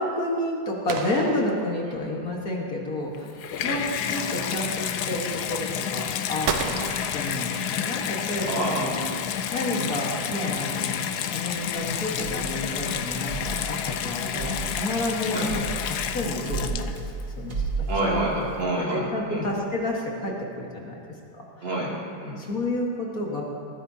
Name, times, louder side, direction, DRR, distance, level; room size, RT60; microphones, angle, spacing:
voice 1, 0.0-3.3 3.6-3.8 4.1-9.0 9.5-15.5 15.9-17.0 17.4-17.9 18.8-21.0 21.3-21.4 22.4-23.4, left 1 dB, 50° left, -2 dB, 1.9 m, -30 dB
sound 1, 0.9-2.3 6.5-8.0, right 6 dB, 85° right, 1.6 m, -33 dB
Water tap faucet / Bathtub (filling or washing), 3.1-17.2 18.0-18.1, left 9 dB, 70° left, 1.0 m, -30 dB
voice 2, 8.5-9.0 9.8-9.9 15.3-15.5 17.9-19.5 21.6-22.4, right 1 dB, 70° right, -5 dB, 3.4 m, -28 dB
sound 2, 11.8-18.6, right 4 dB, 45° right, 2.1 m, -34 dB
19.5 x 15.0 x 2.8 m, 2.4 s
omnidirectional pair, 2.1 m